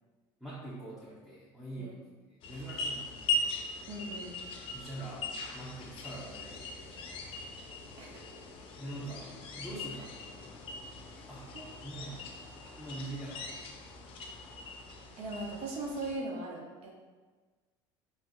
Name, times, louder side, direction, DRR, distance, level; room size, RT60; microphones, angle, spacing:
voice 1, 0.4-1.9 2.4-3.5 4.7-7.0 8.8-10.5 11.3-11.5 11.8-12.2 12.8-13.5, right 2 dB, 5° right, -8 dB, 0.8 m, -44 dB
sound 1, 2.4-16.2, left 2 dB, 50° left, 0.5 m, -40 dB
voice 2, 3.9-4.4 8.0-8.1 11.1-11.3 11.5-11.6 15.2-16.9, right 2 dB, 60° right, 0 dB, 0.7 m, -39 dB
3.6 x 2.8 x 2.2 m, 1.4 s
supercardioid pair, 95°, 12 cm